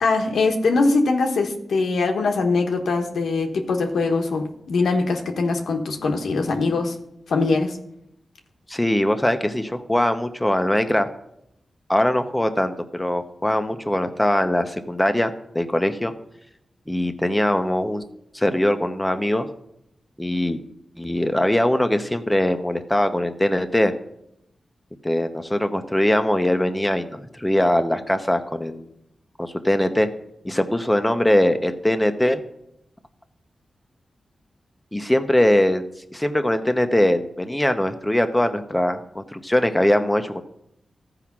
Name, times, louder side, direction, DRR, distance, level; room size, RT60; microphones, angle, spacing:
voice 1, 0.0-6.9 7.3-7.8, left 3 dB, 90° left, 3 dB, 1.2 m, -22 dB
voice 2, 8.7-11.1 11.9-16.1 16.9-18.0 18.3-19.5 20.2-20.6 21.0-23.9 25.0-28.9 29.4-30.1 30.4-32.4 34.9-35.9 36.1-40.4, left 1 dB, 10° left, 8 dB, 1.0 m, -21 dB
14.0 x 4.9 x 6.0 m, 0.79 s
cardioid pair, 65°, 0 cm